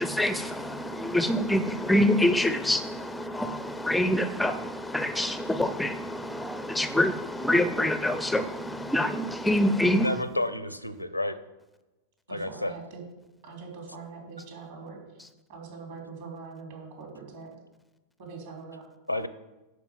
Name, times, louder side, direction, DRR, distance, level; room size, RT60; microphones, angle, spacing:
voice 1, 0.0-10.2 15.2-15.3, left 1 dB, 5° left, 0.4 m, -26 dB
voice 2, 9.9-11.4 12.3-12.7 19.1-19.3, left 1 dB, 90° left, 0.6 m, -30 dB
voice 3, 12.3-13.0 13.4-15.0 15.5-17.6 18.2-18.9, right 4 dB, 55° right, 3.3 m, -43 dB
10.5 x 4.8 x 7.4 m
figure-of-eight pair, 90°, 0 cm